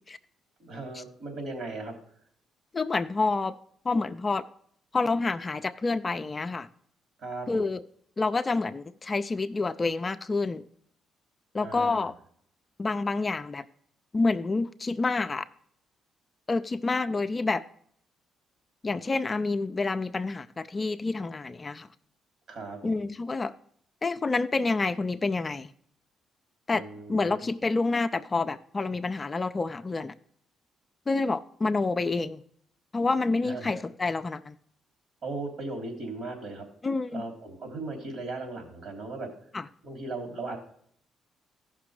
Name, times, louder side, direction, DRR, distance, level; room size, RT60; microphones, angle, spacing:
voice 1, 0.6-1.9 7.2-7.7 11.6-12.1 22.5-23.0 26.7-27.5 33.4-33.8 35.2-36.6 37.1-39.3 39.8-40.6, right 3 dB, 60° right, 3.0 m, -37 dB
voice 2, 2.7-3.6 3.8-4.4 4.9-6.7 7.5-7.8 8.2-10.6 11.5-12.1 12.8-13.6 14.1-15.4 16.5-17.6 18.8-21.9 22.8-23.5 24.0-25.7 26.7-26.8 27.1-30.1 31.1-32.4 32.9-34.6 36.8-37.2 39.5-39.6, left 3 dB, 30° left, 0.4 m, -28 dB
14.5 x 5.9 x 4.9 m
cardioid pair, 90°, 0 cm